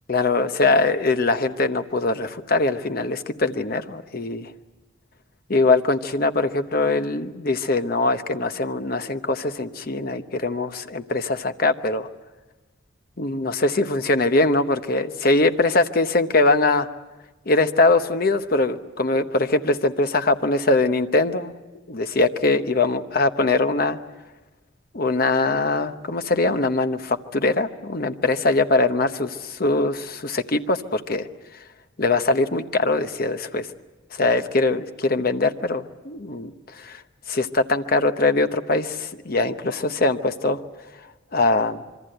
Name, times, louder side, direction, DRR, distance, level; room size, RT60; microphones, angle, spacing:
voice 1, 0.1-4.5 5.5-12.1 13.2-16.9 17.5-21.5 21.9-24.0 24.9-31.3 32.0-33.7 34.1-37.0 37.3-40.6 41.3-41.8, left 2 dB, 45° left, 9 dB, 0.9 m, -22 dB
26.5 x 23.5 x 7.9 m, 1.2 s
head